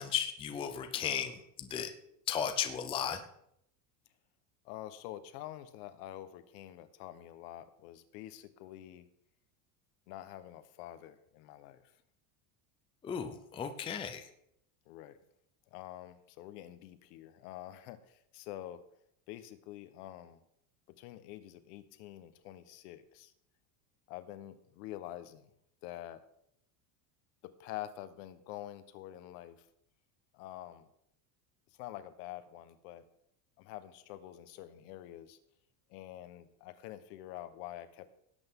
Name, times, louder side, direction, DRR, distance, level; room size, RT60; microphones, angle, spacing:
voice 1, 0.0-1.9 2.3-3.2 13.0-14.3, left 8 dB, 10° left, 7 dB, 0.5 m, -35 dB
voice 2, 4.6-9.1 10.1-11.8 14.9-15.2 15.7-18.8 19.3-20.4 21.0-23.3 24.1-25.5 25.8-26.2 27.4-29.6 30.3-30.9 31.8-33.1 33.6-35.4 35.9-38.1, left 13 dB, 70° left, 12 dB, 1.2 m, -47 dB
17.5 x 8.3 x 3.7 m, 0.74 s
cardioid pair, 160°, 49 cm